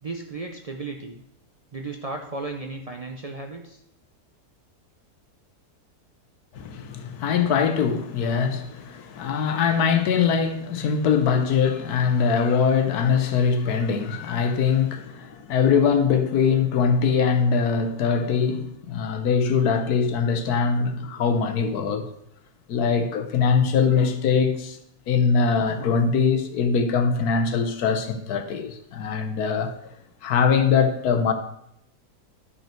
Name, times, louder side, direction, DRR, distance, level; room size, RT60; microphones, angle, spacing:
voice 1, 0.0-1.2 1.7-3.8, right 3 dB, 75° right, 0.3 m, -34 dB
voice 2, 6.5-22.0 22.7-24.8 25.1-29.7 30.2-31.3, left 6 dB, 80° left, 1.4 m, -22 dB
11.0 x 5.5 x 4.4 m
omnidirectional pair, 1.6 m